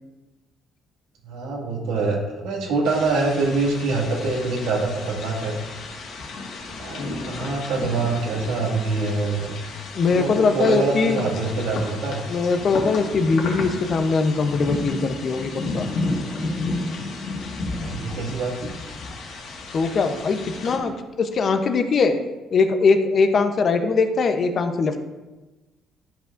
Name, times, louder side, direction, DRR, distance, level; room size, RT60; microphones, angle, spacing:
voice 1, 1.2-5.6 6.8-9.5 10.1-12.3 17.8-18.7, right 3 dB, 90° right, -1 dB, 2.0 m, -25 dB
sound 1, 2.8-20.8, left 2 dB, 65° left, 1.7 m, -32 dB
voice 2, 9.9-11.3 12.3-15.9 19.7-22.2 22.5-25.0, left 4 dB, 40° left, 7 dB, 0.7 m, -21 dB
13.0 x 5.5 x 2.6 m, 1.1 s
cardioid pair, 135°, 0 cm